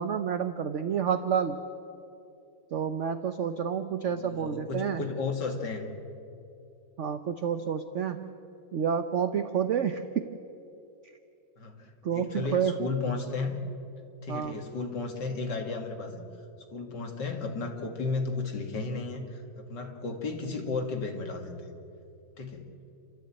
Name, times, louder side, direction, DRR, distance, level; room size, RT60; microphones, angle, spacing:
voice 1, 0.0-1.6 2.7-5.0 7.0-8.4 8.7-10.3 12.0-12.8 14.3-14.6, right 7 dB, 55° right, 9 dB, 0.8 m, -29 dB
voice 2, 4.1-5.9 11.6-13.5 14.2-16.2 16.7-21.6 22.4-22.7, left 3 dB, 65° left, 3 dB, 2.8 m, -34 dB
29.5 x 13.5 x 8.7 m, 2.7 s
omnidirectional pair, 2.0 m